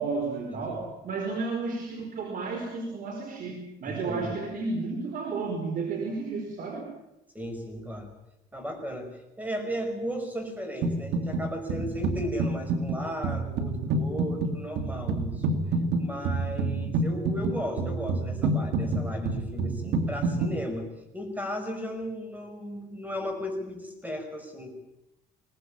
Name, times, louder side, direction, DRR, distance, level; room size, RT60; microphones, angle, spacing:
voice 1, 0.0-6.9, right 4 dB, 55° right, 3 dB, 4.8 m, -32 dB
voice 2, 3.9-4.4 7.3-8.1 8.5-15.6 16.0-20.9 21.1-24.7, equal, 10° right, 6 dB, 5.9 m, -35 dB
sound 1, 10.8-11.4 11.7-20.6, right 3 dB, 80° right, 2.5 m, -28 dB
22.5 x 19.0 x 8.9 m, 0.89 s
cardioid pair, 110°, 17 cm